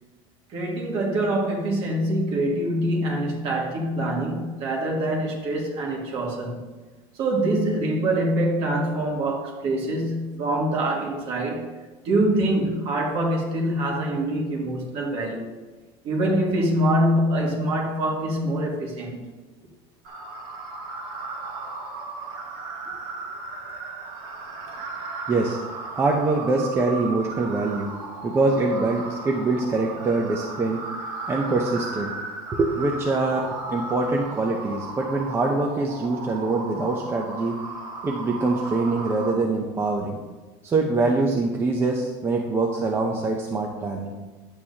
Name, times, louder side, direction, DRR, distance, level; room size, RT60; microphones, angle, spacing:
voice 1, 0.5-6.7 7.2-11.7 12.0-15.5 16.0-19.3, right 1 dB, 45° right, -1 dB, 2.1 m, -24 dB
sound 1, 20.0-39.3, right 3 dB, 75° right, 1.8 m, -35 dB
voice 2, 25.3-25.6 25.9-27.9 28.2-30.8 31.3-32.1 32.5-37.6 38.0-40.2 40.6-44.1, right 3 dB, 15° right, 0 dB, 0.7 m, -24 dB
11.0 x 8.5 x 2.9 m, 1.3 s
cardioid pair, 165°, 14 cm